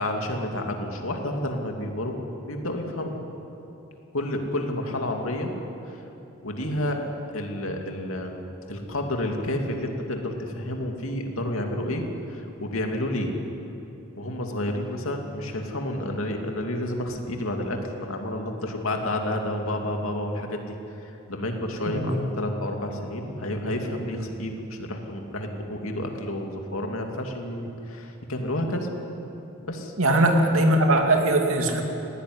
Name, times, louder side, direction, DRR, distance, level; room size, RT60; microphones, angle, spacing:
voice 1, 0.0-2.2 2.5-3.2 4.1-5.5 5.8-6.0 6.4-7.0 7.3-8.4 8.7-13.3 14.2-28.9 29.6-29.9, left 1 dB, 80° left, 3 dB, 2.6 m, -30 dB
voice 2, 21.9-22.2 30.0-31.8, right 1 dB, 80° right, 3 dB, 2.6 m, -20 dB
19.5 x 16.5 x 9.8 m, 3.0 s
head